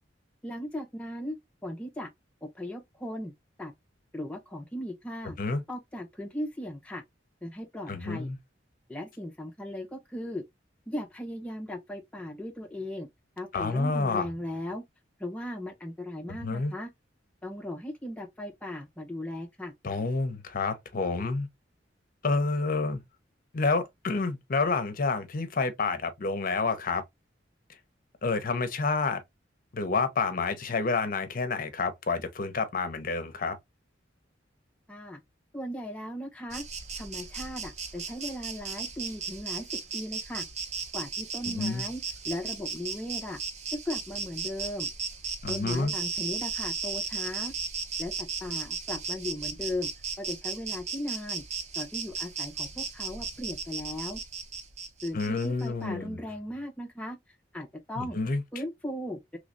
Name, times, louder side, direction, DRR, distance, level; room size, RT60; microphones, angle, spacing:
voice 1, 0.4-2.1 2.4-3.3 3.6-3.7 4.1-5.4 5.7-7.0 7.4-8.3 8.9-10.4 10.9-13.1 13.4-14.8 15.2-16.9 17.4-19.7 34.9-35.2 35.5-36.6 36.9-39.7 39.9-40.4 40.9-43.4 43.7-44.9 45.5-47.5 48.0-49.9 50.2-51.4 51.7-54.2 55.0-57.2 57.5-58.2 58.5-59.4, left 1 dB, 5° left, 0.4 m, -37 dB
voice 2, 7.9-8.4 13.5-14.3 16.3-16.7 19.8-21.5 22.2-23.0 23.5-27.0 28.2-29.2 29.7-33.6 41.5-41.9 45.4-45.9 55.1-56.2 58.0-58.4, left 4 dB, 50° left, 0.6 m, -29 dB
Insect, 36.5-55.7, right 5 dB, 35° right, 0.6 m, -36 dB
3.1 x 3.1 x 2.5 m
head